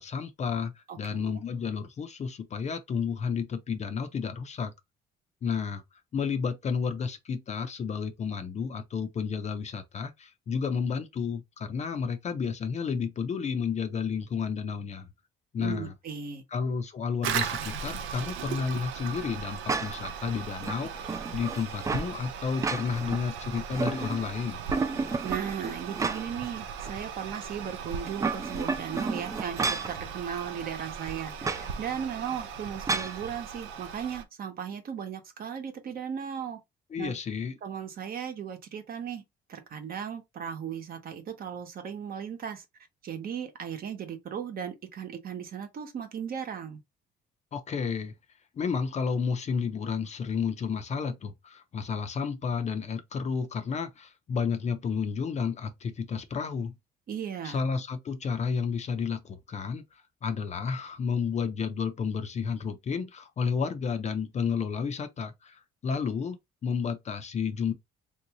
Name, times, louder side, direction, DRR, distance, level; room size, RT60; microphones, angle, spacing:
voice 1, 0.0-4.7 5.4-5.8 6.1-15.1 15.5-15.9 16.5-24.6 36.9-37.6 47.5-48.1 48.5-56.7 57.4-66.4 66.6-67.7, left 6 dB, 35° left, 0.5 m, -31 dB
voice 2, 0.9-1.3 15.6-16.4 25.2-36.6 37.0-37.2 37.6-39.2 39.5-42.6 43.0-46.8 57.1-57.7, right 8 dB, 50° right, 1.0 m, -36 dB
Toilet flush, 17.2-34.2, right 7 dB, 90° right, 0.6 m, -38 dB
sound 1, 19.7-20.1 20.6-22.1 22.5-23.2 23.5-24.3 24.7-26.5 26.9-27.0 28.0-30.0 31.4-31.7 32.9-33.2, right 4 dB, 15° right, 0.3 m, -31 dB
3.5 x 2.7 x 2.9 m
cardioid pair, 130°, 20 cm